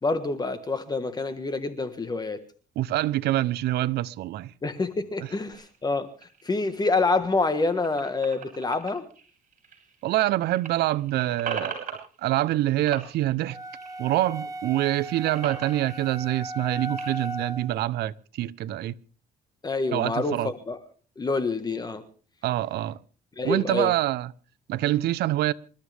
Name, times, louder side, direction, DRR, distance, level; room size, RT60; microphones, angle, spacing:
voice 1, 0.0-2.4 4.6-6.1 6.4-9.1 19.6-20.8 21.2-22.0 23.4-23.9, left 3 dB, 25° left, 1.5 m, -27 dB
voice 2, 2.8-4.5 10.0-13.6 14.0-18.9 19.9-20.5 22.4-23.0 23.4-24.3 24.7-25.5, right 15 dB, 75° right, 0.8 m, -26 dB
sound 1, 5.5-10.3 10.5-12.6 12.9-14.3 14.7-17.3, right 6 dB, 50° right, 7.8 m, -41 dB
sound 2, 13.5-17.8, right 1 dB, 20° right, 1.3 m, -37 dB
27.5 x 13.0 x 3.5 m
cardioid pair, 110°, 17 cm